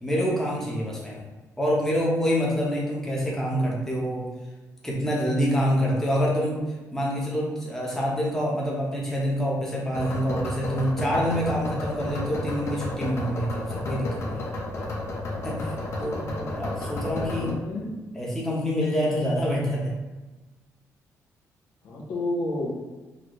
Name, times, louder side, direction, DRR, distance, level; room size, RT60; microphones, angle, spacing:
voice 1, 0.0-1.2 1.6-4.3 4.8-14.5 15.4-16.2 16.6-17.5 18.2-19.9, equal, 5° left, -4 dB, 0.8 m, -26 dB
sound 1, 9.9-17.5, left 2 dB, 50° left, 0.7 m, -32 dB
voice 2, 16.0-16.5 17.4-17.9 21.8-22.7, left 2 dB, 90° left, -3 dB, 0.9 m, -31 dB
4.0 x 2.0 x 3.0 m, 1.2 s
cardioid pair, 125°, 6 cm